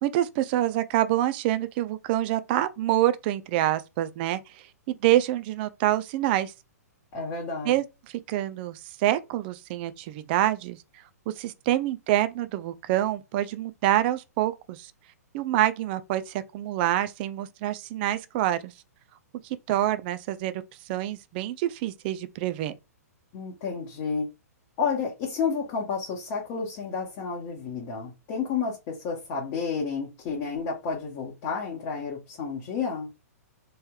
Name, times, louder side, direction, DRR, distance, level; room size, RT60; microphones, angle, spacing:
voice 1, 0.0-6.5 7.6-10.8 11.3-14.9 15.3-18.7 19.4-22.7, right 13 dB, 40° right, 0.4 m, -26 dB
voice 2, 7.1-7.7 23.3-24.3 24.8-33.1, left 5 dB, 35° left, 1.0 m, -31 dB
3.1 x 3.0 x 2.3 m
figure-of-eight pair, 115°, 9 cm